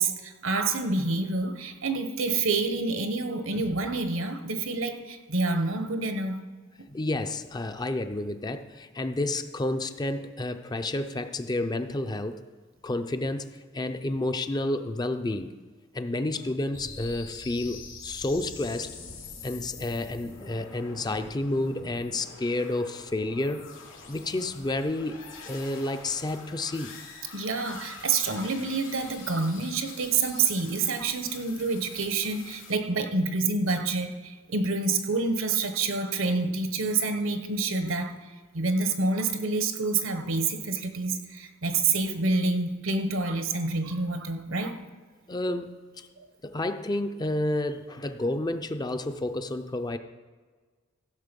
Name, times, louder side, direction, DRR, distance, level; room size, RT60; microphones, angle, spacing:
voice 1, 0.0-6.4 27.3-38.1 38.5-44.7, right 3 dB, 75° right, 7 dB, 1.1 m, -27 dB
voice 2, 6.9-12.4 12.8-13.5 13.7-15.5 15.9-18.9 19.4-23.7 24.1-26.9 45.3-46.1 46.4-50.0, left 2 dB, 20° left, 8 dB, 0.5 m, -30 dB
sound 1, 16.7-32.7, left 4 dB, 75° left, 3.2 m, -45 dB
15.0 x 6.5 x 5.3 m, 1.4 s
head